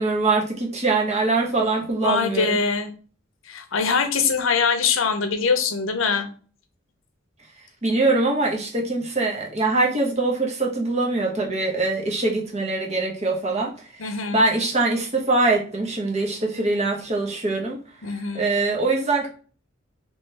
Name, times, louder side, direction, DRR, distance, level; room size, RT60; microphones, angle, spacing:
voice 1, 0.0-2.6 7.8-13.7 14.0-17.8 18.3-19.3, right 3 dB, 35° right, 1.0 m, -23 dB
voice 2, 2.0-2.9 3.5-6.3 14.0-14.4 18.0-18.5, left 5 dB, 75° left, 0.7 m, -23 dB
3.2 x 3.1 x 3.2 m
head